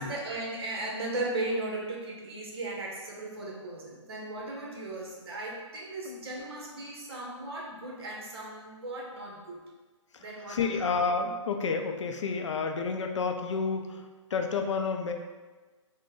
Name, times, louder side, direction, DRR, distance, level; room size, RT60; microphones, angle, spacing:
voice 1, 0.0-9.6 10.2-10.8, right 2 dB, 50° right, -1 dB, 0.9 m, -36 dB
voice 2, 10.1-14.0 14.3-15.1, left 5 dB, 70° left, 4 dB, 0.5 m, -30 dB
3.8 x 2.1 x 3.7 m, 1.3 s
hypercardioid pair, 160°, 16 cm